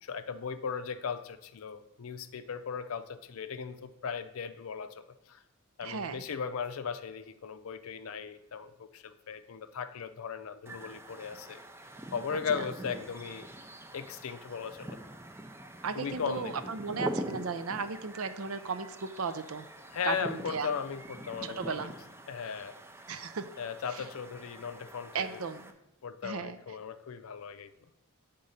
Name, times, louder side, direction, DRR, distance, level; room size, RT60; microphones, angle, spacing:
voice 1, 0.0-5.4 5.8-11.6 12.1-13.5 13.9-15.0 15.9-16.6 19.9-21.9 22.3-22.8 23.6-25.4 26.0-27.9, left 6 dB, 75° left, 10 dB, 0.5 m, -37 dB
voice 2, 5.8-6.2 12.5-12.6 15.8-19.7 20.0-20.7 21.4-21.9 23.1-23.4 23.9-24.0 25.1-25.7 26.2-26.6, right 5 dB, 75° right, 11 dB, 0.6 m, -35 dB
sound 1, 10.7-25.7, right 1 dB, 10° right, 0.5 m, -44 dB
7.9 x 3.8 x 5.5 m, 0.89 s
head